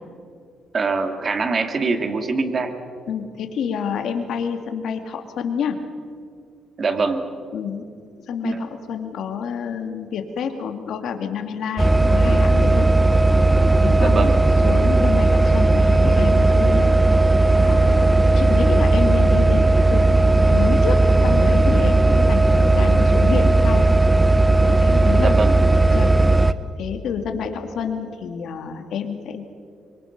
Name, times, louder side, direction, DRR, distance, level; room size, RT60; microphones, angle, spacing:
voice 1, 0.7-2.8 6.8-7.2 8.4-8.6 14.0-14.4 25.2-25.5, right 4 dB, 40° right, 6 dB, 2.4 m, -23 dB
voice 2, 3.1-5.8 7.5-7.8 8.3-12.9 13.8-14.3 14.6-16.9 17.6-20.0 20.5-23.9 24.6-25.4 25.8-26.1 26.8-29.4, left 7 dB, 70° left, 5 dB, 2.3 m, -28 dB
sound 1, 11.8-26.5, right 2 dB, 15° right, 0.8 m, -16 dB
25.0 x 23.5 x 6.0 m, 2.3 s
cardioid pair, 90°, 0 cm